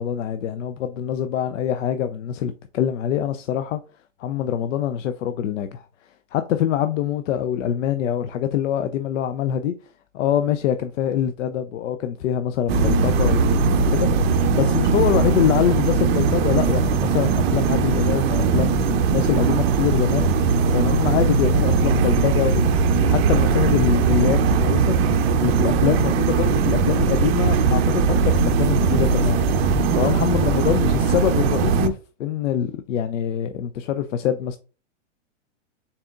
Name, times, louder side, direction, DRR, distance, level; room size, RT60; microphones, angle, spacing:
voice 1, 0.0-3.8 4.2-5.8 6.3-9.7 10.1-14.1 14.5-25.0 25.4-34.6, left 10 dB, 70° left, 0.5 m, -24 dB
sound 1, 12.7-31.9, right 5 dB, 50° right, 0.6 m, -19 dB
4.1 x 3.6 x 2.4 m
hypercardioid pair, 125°, 38 cm